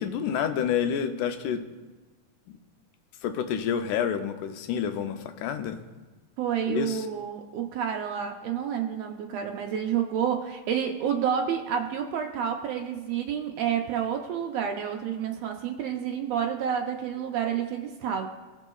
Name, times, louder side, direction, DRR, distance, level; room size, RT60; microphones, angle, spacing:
voice 1, 0.0-1.6 3.2-5.8 6.7-7.1, left 8 dB, 85° left, 8 dB, 2.1 m, -28 dB
voice 2, 6.4-18.3, right 8 dB, 90° right, 3 dB, 1.5 m, -29 dB
17.5 x 5.9 x 2.3 m, 1.2 s
omnidirectional pair, 3.5 m